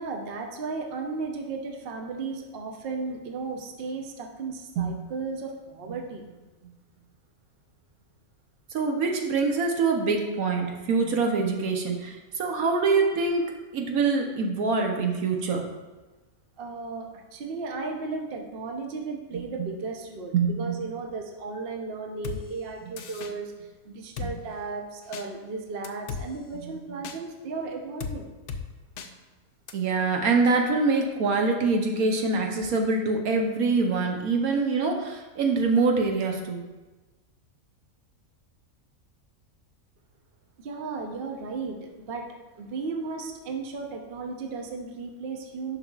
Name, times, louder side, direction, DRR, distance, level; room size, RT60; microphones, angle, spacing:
voice 1, 0.0-6.2 16.6-23.5 23.8-28.3 40.6-42.3 42.6-45.8, right 4 dB, 50° right, 3 dB, 0.8 m, -35 dB
voice 2, 8.7-13.5 13.7-15.6 20.3-20.5 29.7-36.6, right 4 dB, 75° right, 2 dB, 1.3 m, -24 dB
Drum kit, 22.2-22.4 23.0-23.3 24.2-24.3 25.1-25.3 25.8-26.2 27.0-27.2 28.0-28.2 28.5-28.6 29.0-29.1 29.7-29.8, left 6 dB, 65° left, 0.8 m, -34 dB
10.0 x 5.8 x 2.4 m, 1.2 s
omnidirectional pair, 1.5 m